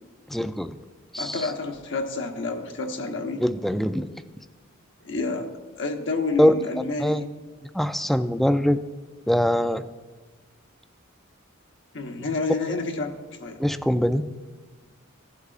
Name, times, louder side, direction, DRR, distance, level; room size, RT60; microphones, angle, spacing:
voice 1, 0.3-0.8 1.1-1.5 3.4-4.1 6.4-6.5 7.0-7.2 7.7-8.8 9.3-9.8 13.6-14.3, equal, ahead, 10 dB, 0.3 m, -22 dB
voice 2, 1.2-3.4 5.0-5.5 5.8-7.3 11.9-13.1 13.4-13.6, left 3 dB, 60° left, 3 dB, 1.1 m, -29 dB
16.0 x 8.2 x 2.4 m, 1.4 s
head